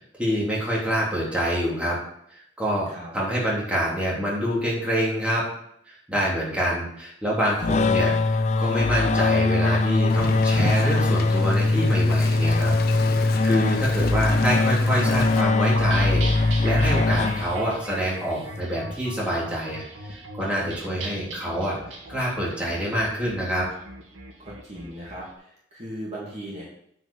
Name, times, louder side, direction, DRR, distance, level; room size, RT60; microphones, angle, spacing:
voice 1, 0.2-2.0 2.3-2.9 3.1-5.4 5.9-12.7 13.1-21.8 22.1-23.7, equal, 5° right, -6 dB, 3.4 m, -26 dB
sound 1, 7.6-17.9, left 3 dB, 35° left, 0.5 m, -21 dB
voice 2, 7.6-8.2 24.4-26.8, right 1 dB, 35° right, -5 dB, 2.8 m, -38 dB
Wind, 10.1-15.4, left 3 dB, 55° left, 0.9 m, -33 dB
sound 2, 15.8-25.2, right 1 dB, 85° right, 2.3 m, -38 dB
9.1 x 5.1 x 7.2 m, 0.71 s
head